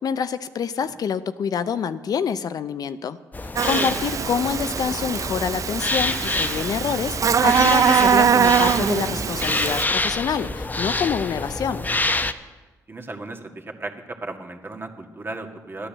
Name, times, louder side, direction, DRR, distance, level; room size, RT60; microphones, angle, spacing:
voice 1, 0.0-3.2 3.7-11.9, left 7 dB, 65° left, 13 dB, 0.6 m, -27 dB
sound 1, 3.3-12.3, left 2 dB, 25° left, 0.9 m, -27 dB
Buzz, 3.6-9.8, right 7 dB, 50° right, 0.5 m, -22 dB
voice 2, 12.9-15.9, right 2 dB, 30° right, 4 dB, 1.9 m, -36 dB
12.0 x 10.0 x 7.4 m, 1.2 s
supercardioid pair, 60°, 7 cm